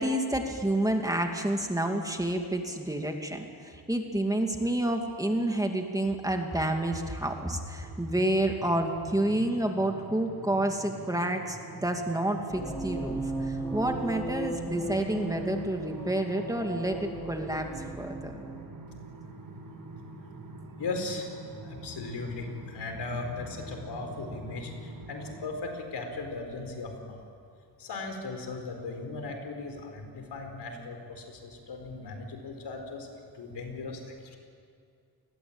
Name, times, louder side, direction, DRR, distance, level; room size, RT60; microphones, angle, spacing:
voice 1, 0.0-17.7 18.0-18.4, right 1 dB, 10° right, 3 dB, 2.4 m, -29 dB
sound 1, 7.8-25.4, right 2 dB, 65° right, 4.0 m, -45 dB
sound 2, 12.5-18.6, right 1 dB, 10° left, 4.5 m, -36 dB
voice 2, 20.8-27.2 27.8-33.1 33.3-34.4, left 3 dB, 85° left, 5 dB, 4.5 m, -38 dB
29.0 x 20.5 x 8.8 m, 2.3 s
wide cardioid pair, 135°, 39 cm